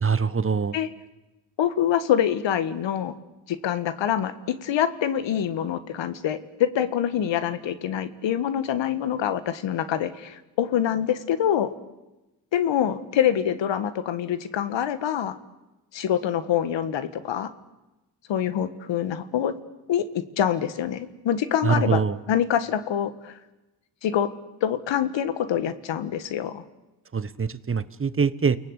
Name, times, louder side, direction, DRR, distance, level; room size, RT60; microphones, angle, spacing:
voice 1, 0.0-0.7 21.6-22.2 27.1-28.6, right 5 dB, 25° right, 15 dB, 1.1 m, -23 dB
voice 2, 1.6-3.1 3.5-11.7 12.5-15.4 15.9-17.5 18.3-19.5 19.9-22.0 22.3-23.3 24.0-24.3 24.6-26.6, left 9 dB, 65° left, 13 dB, 1.7 m, -25 dB
29.0 x 19.0 x 8.2 m, 1.0 s
supercardioid pair, 65°, 47 cm